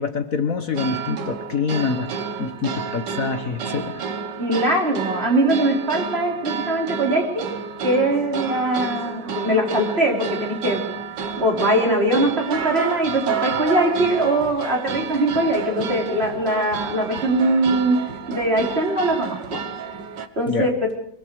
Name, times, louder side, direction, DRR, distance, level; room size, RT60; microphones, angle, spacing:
voice 1, 0.0-2.1 2.4-4.0 20.5-20.7, left 5 dB, 50° left, 7 dB, 1.6 m, -25 dB
sound 1, 0.7-20.3, right 6 dB, 75° right, 2.1 m, -30 dB
voice 2, 4.4-7.4 7.8-10.8 11.4-18.0 18.3-19.6 20.4-20.7, right 1 dB, 35° right, 0 dB, 4.6 m, -21 dB
23.5 x 23.5 x 4.9 m, 0.68 s
omnidirectional pair, 1.9 m